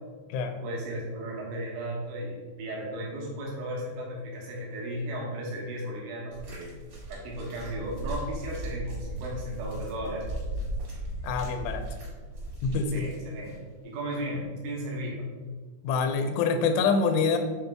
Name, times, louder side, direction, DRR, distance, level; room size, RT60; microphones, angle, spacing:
voice 1, 0.6-6.8 7.1-10.2 12.9-13.6 13.8-15.3, right 1 dB, 85° right, -3 dB, 3.7 m, -35 dB
sound 1, 6.3-13.6 14.4-14.5, right 1 dB, 65° right, 1.0 m, -37 dB
voice 2, 11.2-11.9 12.6-13.0 15.8-17.4, left 5 dB, 90° left, 6 dB, 3.1 m, -25 dB
8.7 x 4.0 x 3.4 m, 1.5 s
omnidirectional pair, 5.3 m